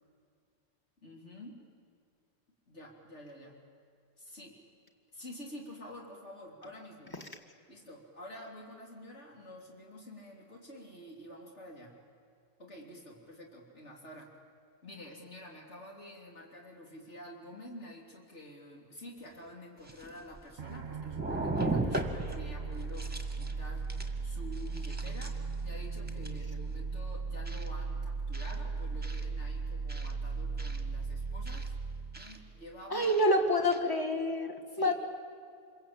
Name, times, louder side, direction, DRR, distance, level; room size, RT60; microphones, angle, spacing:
voice 1, 1.0-1.6 2.7-3.6 4.2-4.5 5.1-7.2 7.7-12.0 12.6-14.4 14.8-31.7 32.2-33.1 34.7-34.9, left 1 dB, 85° left, -1 dB, 3.6 m, -49 dB
sound 1, 19.2-19.3 19.8-20.8 21.1-22.4 22.8-23.5 23.9-24.2 24.5-25.5 26.1-26.4 27.5-27.7 28.3-28.6 29.0-29.3 29.9-30.1 30.6-30.8 31.5-31.7 32.1-32.4 33.0-33.3 33.7-33.8, right 2 dB, 10° right, 1.8 m, -37 dB
sound 2, 20.6-33.3, right 4 dB, 45° right, 1.1 m, -37 dB
voice 2, 32.9-34.9, left 1 dB, 20° left, 3 dB, 1.9 m, -27 dB
27.0 x 22.5 x 8.9 m, 2.3 s
omnidirectional pair, 1.2 m